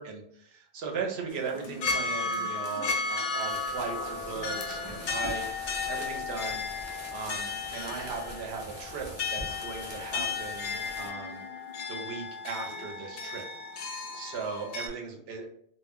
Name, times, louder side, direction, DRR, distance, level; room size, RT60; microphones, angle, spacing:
voice 1, 0.0-5.5 5.9-11.4 11.9-13.5 14.1-15.5, right 5 dB, 75° right, 1 dB, 0.8 m, -38 dB
sound 1, 1.3-14.9, left 4 dB, 65° left, 0.7 m, -34 dB
sound 2, 3.4-11.1, right 1 dB, 35° right, 0.5 m, -44 dB
2.1 x 2.1 x 3.5 m, 0.68 s
omnidirectional pair, 1.1 m